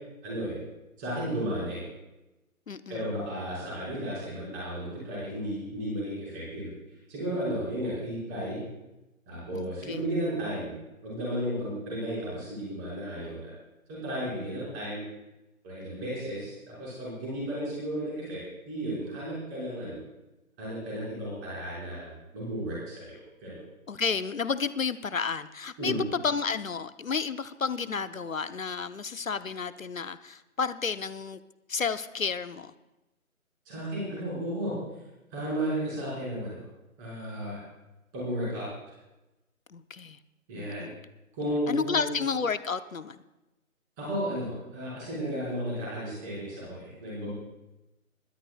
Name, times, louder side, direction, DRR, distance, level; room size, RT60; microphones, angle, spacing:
voice 1, 0.2-0.6 1.0-1.8 2.9-6.7 7.1-8.6 9.3-10.7 11.0-13.5 13.9-15.0 15.6-18.4 18.6-20.0 20.6-23.6 25.8-26.0 33.6-34.7 35.3-36.6 37.0-37.6 38.1-38.7 40.5-40.9 41.3-42.1 44.0-47.3, equal, 15° right, -7 dB, 5.0 m, -33 dB
voice 2, 2.7-3.1 9.5-10.1 23.9-25.9 26.2-31.4 31.7-32.7 39.7-40.2 40.5-41.0 41.7-43.2, left 5 dB, 65° left, 13 dB, 0.8 m, -31 dB
27.0 x 13.0 x 2.3 m, 1.0 s
figure-of-eight pair, 155°, 43 cm